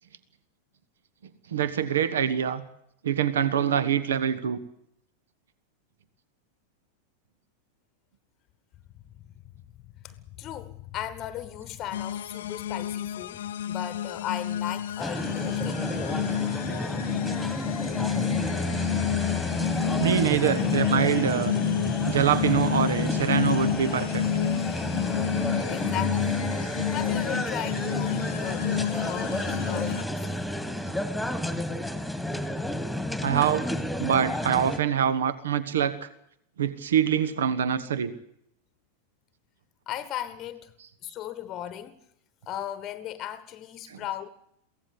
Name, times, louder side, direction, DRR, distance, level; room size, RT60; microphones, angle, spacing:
voice 1, 1.5-2.6 3.0-4.6 20.0-21.6 22.0-24.2 33.2-33.7 34.0-36.1 36.6-38.1, right 9 dB, 65° right, 1.3 m, -25 dB
voice 2, 10.0-15.8 25.7-26.4 26.9-30.5 39.9-40.7 41.0-42.0 42.5-44.3, left 11 dB, 35° left, 1.1 m, -37 dB
sound 1, 11.9-30.0, left 10 dB, 60° left, 0.8 m, -30 dB
sound 2, 15.0-34.8, left 1 dB, ahead, 2.0 m, -31 dB
23.0 x 16.5 x 8.4 m
figure-of-eight pair, 90°, 0 cm